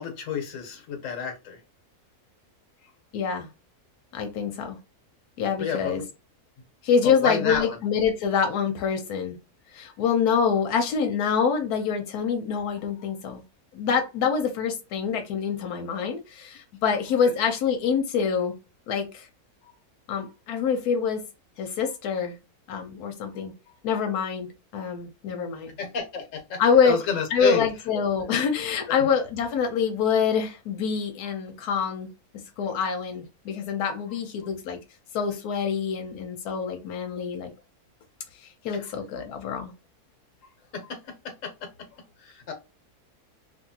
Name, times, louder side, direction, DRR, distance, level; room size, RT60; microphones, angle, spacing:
voice 1, 0.0-1.6 5.6-6.0 7.0-7.8 19.6-19.7 23.4-23.5 25.8-27.6 29.0-29.1 38.7-38.9 40.7-41.7 42.2-42.5, left 6 dB, 60° left, 1.2 m, -31 dB
voice 2, 3.1-3.5 4.1-4.8 5.4-6.0 6.8-9.4 9.7-13.4 13.7-18.5 18.9-19.3 20.1-21.2 21.6-22.4 22.7-23.5 23.8-25.7 26.6-27.0 27.3-32.1 32.6-34.8 35.1-37.5 38.3-39.7, left 6 dB, 85° left, 1.1 m, -26 dB
2.8 x 2.6 x 2.7 m
omnidirectional pair, 1.6 m